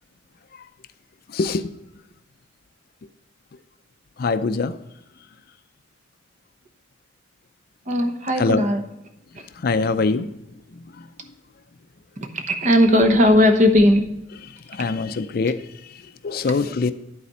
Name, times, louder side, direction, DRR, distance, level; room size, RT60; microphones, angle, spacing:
voice 1, 1.3-1.7 4.2-4.8 8.4-8.7 9.6-10.3 10.7-11.1 14.5-16.9, left 4 dB, 50° left, 0.4 m, -24 dB
voice 2, 7.9-8.8 12.3-14.0, left 1 dB, 40° right, 1.0 m, -17 dB
11.0 x 4.2 x 5.4 m
head